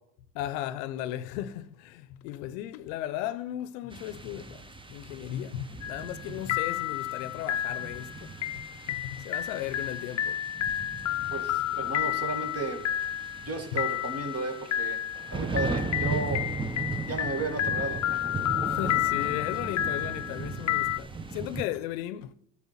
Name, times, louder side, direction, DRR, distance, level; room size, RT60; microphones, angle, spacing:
voice 1, 0.3-8.3 8.9-10.4 11.2-11.3 13.7-13.8 18.6-22.3, left 12 dB, 85° left, 0.7 m, -36 dB
sound 1, 3.9-21.6, right 4 dB, 10° right, 0.7 m, -38 dB
sound 2, 5.8-6.2 6.5-21.0, left 12 dB, 35° left, 0.7 m, -31 dB
voice 2, 11.3-12.8 13.5-15.0 15.3-16.5 17.1-18.3, right 3 dB, 30° right, 1.9 m, -34 dB
11.5 x 4.6 x 7.3 m
supercardioid pair, 90°, 48 cm